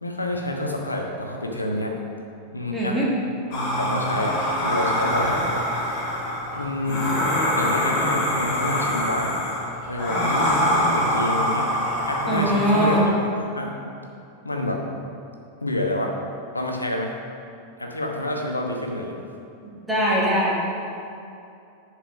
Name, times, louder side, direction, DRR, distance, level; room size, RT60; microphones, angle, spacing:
voice 1, 0.0-2.0 2.5-3.0 3.8-5.7 6.6-7.2 7.5-9.4 9.9-11.7 12.0-13.7 14.4-14.9 15.6-16.1 16.5-17.1 17.8-19.2, left 1 dB, 80° left, 1 dB, 1.1 m, -28 dB
voice 2, 2.7-3.1 12.3-13.1 19.9-20.6, equal, 5° right, -7 dB, 2.2 m, -21 dB
sound 1, 3.5-13.0, equal, 40° left, 1.8 m, -24 dB
10.5 x 4.8 x 5.1 m, 2.7 s
figure-of-eight pair, 90°, 0 cm